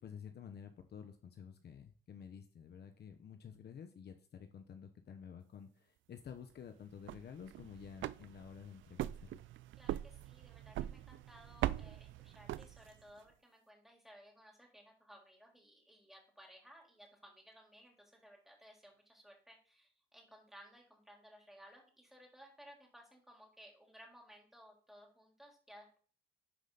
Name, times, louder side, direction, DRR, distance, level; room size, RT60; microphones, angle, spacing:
voice 1, 0.0-9.4, left 7 dB, 55° left, 7 dB, 0.9 m, -51 dB
sound 1, 6.9-13.2, right 14 dB, 75° right, 0.4 m, -42 dB
voice 2, 9.8-26.0, equal, ahead, -1 dB, 3.6 m, -59 dB
11.0 x 5.1 x 4.0 m, 0.43 s
cardioid pair, 90°, 20 cm